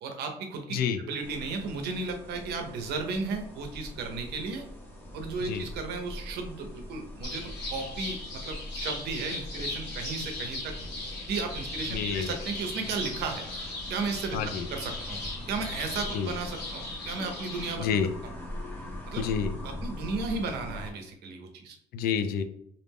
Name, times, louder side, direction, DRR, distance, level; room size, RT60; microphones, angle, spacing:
voice 1, 0.0-0.8 1.0-4.6 5.1-10.7 11.3-13.5 13.9-14.4 14.7-15.2 15.5-17.8 19.1-19.2 19.6-21.8, right 4 dB, 75° right, 4 dB, 0.6 m, -34 dB
voice 2, 0.7-1.0 5.4-5.7 11.9-12.3 14.3-14.7 16.1-16.3 17.8-18.1 19.2-19.5 21.9-22.4, left 7 dB, 65° left, 9 dB, 0.4 m, -28 dB
sound 1, 1.2-20.9, left 1 dB, 10° left, 0.7 m, -42 dB
sound 2, 7.2-17.7, left 2 dB, 90° left, 1.1 m, -39 dB
2.5 x 2.1 x 3.4 m, 0.74 s
cardioid pair, 110°, 17 cm